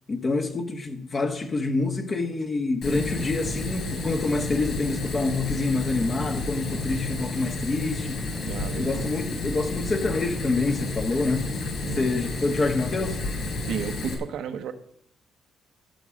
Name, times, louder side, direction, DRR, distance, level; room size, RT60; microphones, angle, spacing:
voice 1, 0.1-8.3 8.8-11.5 11.9-13.2, left 3 dB, 35° left, 1.7 m, -27 dB
Fire, 2.8-14.1, left 2 dB, 70° left, 3.7 m, -31 dB
voice 2, 8.5-9.1 11.8-12.1 13.6-14.7, right 8 dB, 80° right, 1.1 m, -33 dB
14.0 x 7.1 x 6.3 m
cardioid pair, 90°, 0 cm